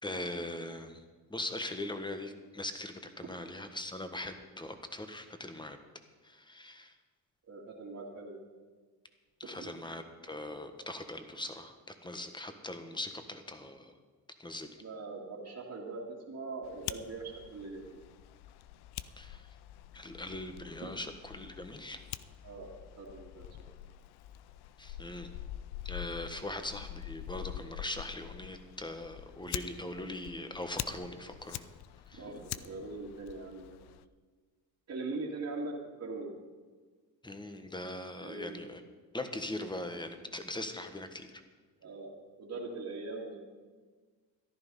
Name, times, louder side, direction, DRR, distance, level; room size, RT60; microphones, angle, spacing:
voice 1, 0.0-1.0 1.3-5.8 6.2-6.9 9.4-11.8 12.0-13.9 14.4-14.7 19.2-19.5 19.9-22.0 24.8-25.3 25.8-31.6 32.1-32.2 37.2-38.8 39.1-41.4, left 1 dB, 10° left, 7 dB, 1.4 m, -41 dB
voice 2, 7.5-8.4 9.5-9.7 14.8-18.0 20.8-20.9 22.4-23.7 26.4-26.5 32.1-33.8 34.9-36.4 38.2-38.6 41.8-43.4, right 3 dB, 45° right, -6 dB, 2.3 m, -41 dB
Fire, 16.6-34.0, left 13 dB, 90° left, 0.6 m, -45 dB
14.0 x 11.0 x 5.5 m, 1.4 s
cardioid pair, 85°, 38 cm